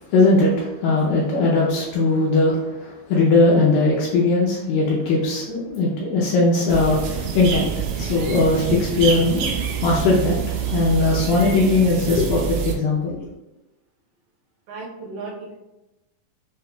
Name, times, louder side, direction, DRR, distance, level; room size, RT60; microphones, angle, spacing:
voice 1, 0.1-7.6 8.0-9.5 9.8-13.2, left 2 dB, 80° left, -4 dB, 2.2 m, -19 dB
voice 2, 1.2-1.5 14.7-15.5, right 3 dB, 75° right, -6 dB, 2.0 m, -36 dB
sound 1, 6.7-12.8, right 7 dB, 90° right, 1.8 m, -26 dB
6.3 x 2.2 x 2.2 m, 0.98 s
omnidirectional pair, 4.2 m